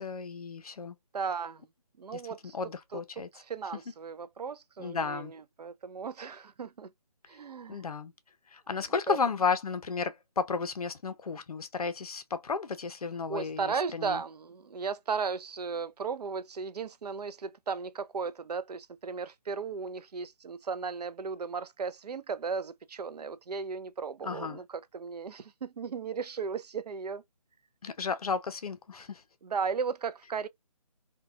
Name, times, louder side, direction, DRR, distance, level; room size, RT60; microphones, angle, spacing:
voice 1, 0.0-1.0 2.1-2.2 2.5-3.3 4.8-5.3 7.7-8.1 8.5-14.2 24.2-24.6 27.8-29.2, left 5 dB, 70° left, 0.6 m, -33 dB
voice 2, 1.1-1.7 2.0-2.5 2.9-3.0 3.3-6.9 7.3-7.9 9.1-9.2 13.3-24.6 24.9-27.2 29.4-30.5, right 5 dB, 85° right, 0.5 m, -35 dB
2.7 x 2.2 x 2.3 m
figure-of-eight pair, 165°, 20 cm